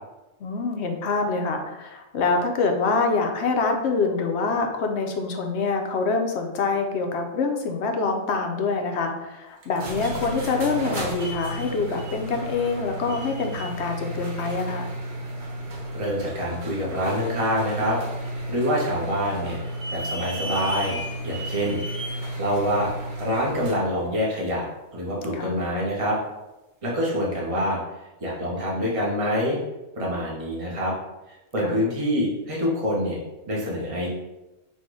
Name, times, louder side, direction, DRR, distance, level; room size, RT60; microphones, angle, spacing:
voice 1, 0.4-14.9 25.3-25.5 31.6-31.8, left 4 dB, 60° left, 4 dB, 0.9 m, -25 dB
sound 1, 9.6-23.9, right 1 dB, 45° right, 0.8 m, -33 dB
voice 2, 15.9-18.0 18.5-19.6 19.9-21.8 22.4-22.9 23.2-24.7 24.9-26.2 26.8-27.8 28.2-29.6 29.9-30.9 31.3-33.2 33.5-34.1, equal, 25° right, -4 dB, 1.1 m, -26 dB
4.2 x 2.6 x 4.7 m, 0.99 s
omnidirectional pair, 1.4 m